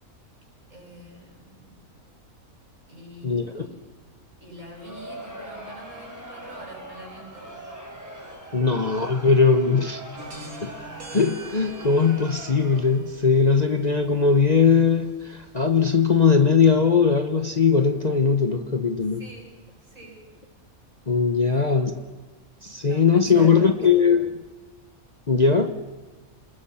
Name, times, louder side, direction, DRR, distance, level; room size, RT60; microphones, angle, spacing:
voice 1, 0.7-1.9 2.9-3.7 4.4-7.6 8.5-8.6 19.1-19.5 19.8-20.2 21.4-22.3 22.8-24.0, right 1 dB, 60° right, -1 dB, 7.6 m, -46 dB
voice 2, 3.2-3.7 8.5-10.0 10.6-10.7 11.1-19.2 21.1-21.9 22.6-24.3 25.3-25.7, left 5 dB, 30° left, 7 dB, 1.1 m, -20 dB
Crowd, 4.6-13.1, right 1 dB, 10° right, 4.1 m, -41 dB
sound 1, 10.2-16.4, right 1 dB, 80° right, 3.2 m, -46 dB
26.5 x 21.0 x 5.8 m, 1.2 s
omnidirectional pair, 1.5 m